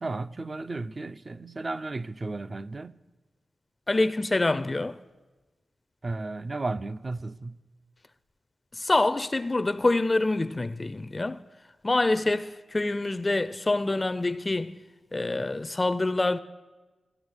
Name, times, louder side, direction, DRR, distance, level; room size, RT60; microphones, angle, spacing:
voice 1, 0.0-3.0 6.0-7.6, right 3 dB, 40° right, 0.4 m, -34 dB
voice 2, 3.9-5.0 8.8-11.4 11.8-14.8 15.1-16.4, left 2 dB, 30° left, 0.4 m, -26 dB
14.0 x 7.0 x 9.6 m
cardioid pair, 70°, 0 cm